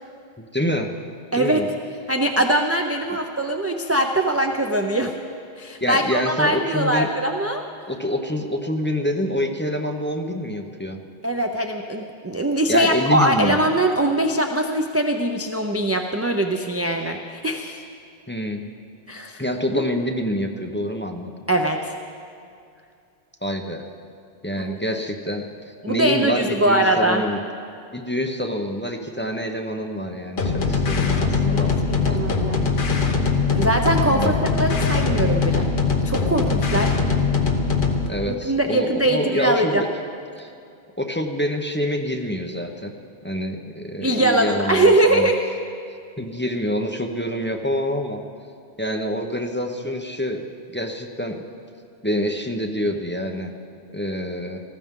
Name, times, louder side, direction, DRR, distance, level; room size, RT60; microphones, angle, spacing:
voice 1, 0.4-0.9 1.4-1.7 5.8-7.1 7.9-11.0 12.7-13.6 18.3-18.6 19.4-21.3 23.4-23.9 24.4-25.4 25.9-27.4 27.9-32.2 34.1-34.4 38.1-39.9 40.4-40.5 41.0-42.9 43.2-45.3 46.2-48.2 48.8-50.4 50.7-51.4 52.0-53.5 53.9-54.6, equal, 10° left, 2 dB, 0.7 m, -26 dB
voice 2, 1.3-1.7 2.1-5.1 5.6-7.6 11.2-17.8 19.1-19.4 21.5-21.9 24.6-25.0 25.8-27.2 31.5-31.7 32.0-32.6 33.5-35.7 36.0-36.9 38.3-39.8 44.0-45.5, right 1 dB, 20° right, 3 dB, 0.5 m, -22 dB
sound 1, 30.4-38.1, left 4 dB, 55° left, 1.1 m, -21 dB
19.5 x 14.5 x 3.7 m, 2.4 s
omnidirectional pair, 1.1 m